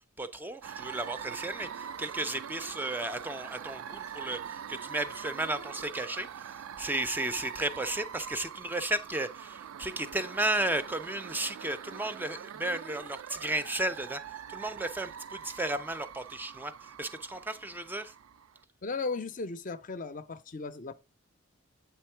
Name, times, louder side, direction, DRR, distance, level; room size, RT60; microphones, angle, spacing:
voice 1, 0.2-14.2 14.5-18.1, right 1 dB, 10° right, 0.4 m, -34 dB
sound 1, 0.6-18.6, right 8 dB, 75° right, 0.4 m, -43 dB
voice 2, 18.8-20.9, left 4 dB, 40° left, 0.5 m, -36 dB
8.4 x 3.6 x 4.4 m
head